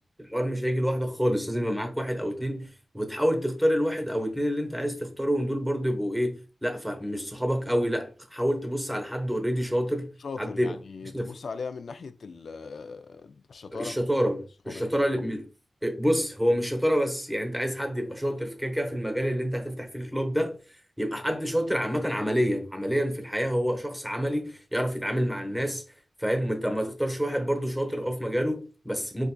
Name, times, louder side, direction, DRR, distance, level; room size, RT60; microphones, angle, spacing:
voice 1, 0.2-10.1 10.4-10.8 11.1-11.3 13.7-15.5 15.8-20.6 21.0-25.8 26.2-29.3, equal, 5° right, 0.8 m, -28 dB
voice 2, 10.2-14.0 14.7-14.9, left 4 dB, 75° left, 0.3 m, -39 dB
4.4 x 2.5 x 2.2 m
cardioid pair, 65°, 0 cm